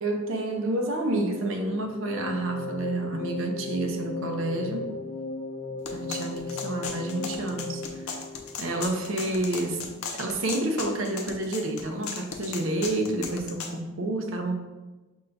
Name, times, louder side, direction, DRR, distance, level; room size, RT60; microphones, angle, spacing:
voice 1, 0.0-4.9 5.9-8.1 8.6-14.6, right 2 dB, 70° right, 4 dB, 0.6 m, -29 dB
sound 1, 1.8-9.0, left 3 dB, 35° left, 0.3 m, -36 dB
sound 2, 5.9-13.7, left 5 dB, 90° left, 0.6 m, -37 dB
5.4 x 2.2 x 3.8 m, 1.2 s
head